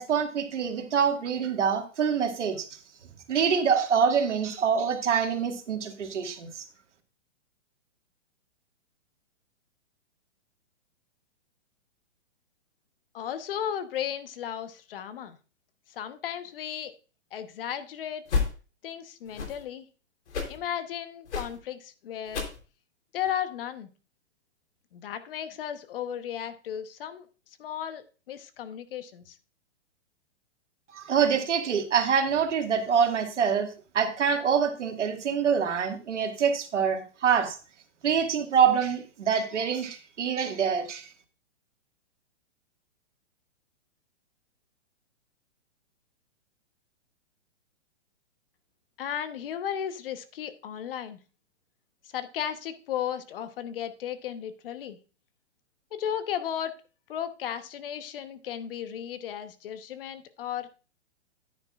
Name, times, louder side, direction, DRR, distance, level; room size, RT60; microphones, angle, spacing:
voice 1, 0.0-2.7 3.3-6.7 30.9-33.7 33.9-37.6 38.0-41.0, right 7 dB, 85° right, 5 dB, 1.9 m, -25 dB
voice 2, 13.1-15.4 15.9-16.9 17.3-18.3 18.8-19.9 20.5-22.5 23.1-23.9 24.9-27.3 27.6-29.4 49.0-51.2 52.0-55.0 55.9-56.8 57.1-60.8, left 9 dB, 50° left, 11 dB, 1.1 m, -35 dB
sound 1, 18.2-18.5 19.2-19.6 20.3-20.6 21.2-21.6 22.2-22.6 23.2-23.3, left 5 dB, 70° left, 3.5 m, -30 dB
10.0 x 9.6 x 2.4 m, 0.35 s
hypercardioid pair, 150°, 35 cm